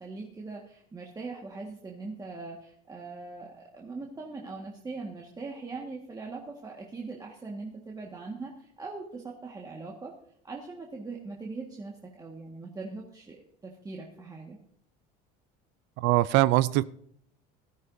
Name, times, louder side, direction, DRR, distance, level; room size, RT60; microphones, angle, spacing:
voice 1, 0.0-10.1 10.4-13.4 13.6-14.6, right 3 dB, 20° right, 1.7 m, -41 dB
voice 2, 16.0-16.8, right 17 dB, 65° right, 0.5 m, -22 dB
16.0 x 13.0 x 2.7 m
supercardioid pair, 115°, 20 cm